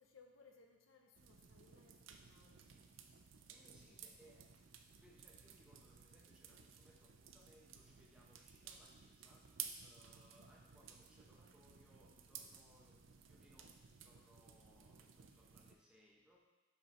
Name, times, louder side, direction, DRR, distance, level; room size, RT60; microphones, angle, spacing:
voice 1, 0.0-2.6 3.7-4.0, left 4 dB, 90° left, 3 dB, 0.8 m, -66 dB
sound 1, 1.1-15.7, right 8 dB, 80° right, 0.5 m, -56 dB
voice 2, 3.5-16.4, equal, 5° right, -3 dB, 1.0 m, -69 dB
5.8 x 5.7 x 4.3 m, 1.1 s
head